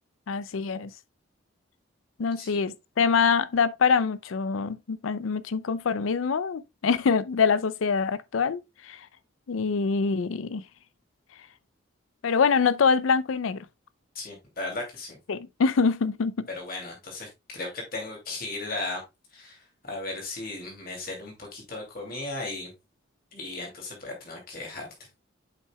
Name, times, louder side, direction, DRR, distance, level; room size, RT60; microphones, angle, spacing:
voice 1, 0.3-0.9 2.2-9.1 9.5-10.6 12.2-13.7 15.3-16.5, left 5 dB, 85° left, 0.5 m, -25 dB
voice 2, 14.1-15.2 16.5-19.0 19.3-22.7 23.3-24.9, left 2 dB, 45° left, 2.6 m, -36 dB
7.8 x 5.6 x 2.2 m
head